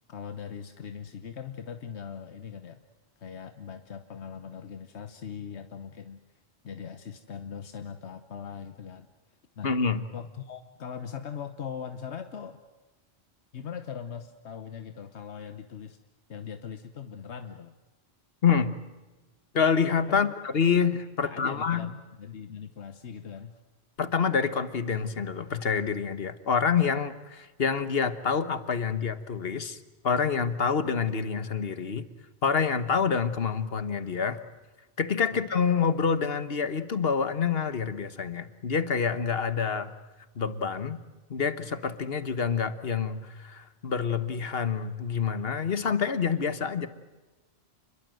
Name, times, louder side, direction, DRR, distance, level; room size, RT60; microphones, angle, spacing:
voice 1, 0.1-2.8 3.2-6.2 6.6-9.1 9.6-9.7 10.1-12.6 13.5-16.0 16.3-17.7 20.1-20.3 21.2-23.6 35.3-35.4, left 7 dB, 90° left, 9 dB, 1.3 m, -40 dB
voice 2, 9.6-10.0 18.4-18.7 19.5-21.9 24.0-29.8 30.0-32.1 32.4-34.4 35.0-39.9 40.4-41.0 41.3-46.9, left 6 dB, 65° left, 12 dB, 1.5 m, -27 dB
29.0 x 22.0 x 7.7 m, 1.1 s
omnidirectional pair, 1.1 m